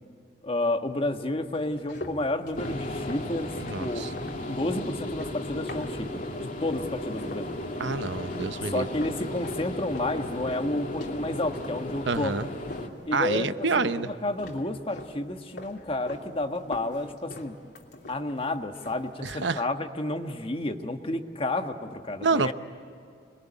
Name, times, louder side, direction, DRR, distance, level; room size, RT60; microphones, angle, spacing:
voice 1, 0.4-3.5 3.8-4.0 4.5-6.2 6.6-7.5 8.6-12.3 13.0-17.5 18.1-22.5, left 2 dB, 30° left, 6 dB, 1.4 m, -31 dB
sound 1, 1.5-6.4 6.7-7.5 7.8-14.1 14.4-15.2 15.5-16.3 16.6-18.4 18.7-19.1, left 1 dB, 65° left, 3.1 m, -43 dB
sound 2, 2.6-12.9, left 1 dB, 50° left, 2.4 m, -35 dB
voice 2, 3.6-4.1 7.8-8.9 12.1-12.5 13.1-14.1 19.2-19.6 22.2-22.5, right 4 dB, 90° right, 12 dB, 0.9 m, -27 dB
26.5 x 21.5 x 9.9 m, 2.5 s
head